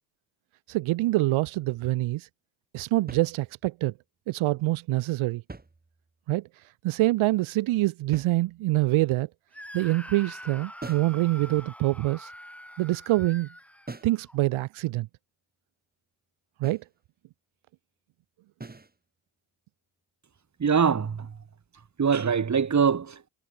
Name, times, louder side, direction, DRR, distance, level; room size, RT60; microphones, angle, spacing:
voice 1, 0.7-2.3 2.7-3.9 4.3-5.4 6.3-6.5 6.8-9.3 9.7-12.3 12.8-13.5 14.0-15.1 16.6-16.8, right 18 dB, 75° right, 2.0 m, -25 dB
sound 1, 3.1-3.8 5.3-6.3 8.1-8.9 10.8-11.2 13.9-14.3 16.6-16.9 18.6-19.0, right 3 dB, 20° right, 5.4 m, -44 dB
Screaming, 9.5-14.4, equal, 5° left, 5.9 m, -45 dB
voice 2, 20.6-21.4 22.0-23.3, right 6 dB, 35° right, 3.4 m, -23 dB
supercardioid pair, 80°, 49 cm